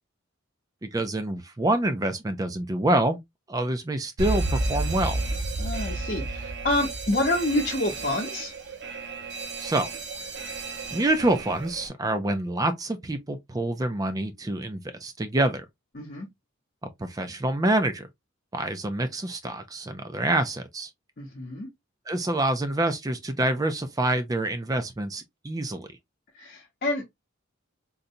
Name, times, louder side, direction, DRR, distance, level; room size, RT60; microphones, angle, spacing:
voice 1, 0.8-3.2 3.5-5.2 9.6-9.9 10.9-15.6 17.0-18.1 18.5-20.9 22.1-25.9, right 1 dB, 20° right, 0.4 m, -26 dB
Alarm, 4.2-11.9, right 2 dB, 60° right, 0.8 m, -32 dB
voice 2, 5.6-8.5 16.0-16.3 21.2-21.7 26.4-27.1, left 1 dB, 45° left, 0.8 m, -28 dB
3.8 x 2.2 x 2.7 m
head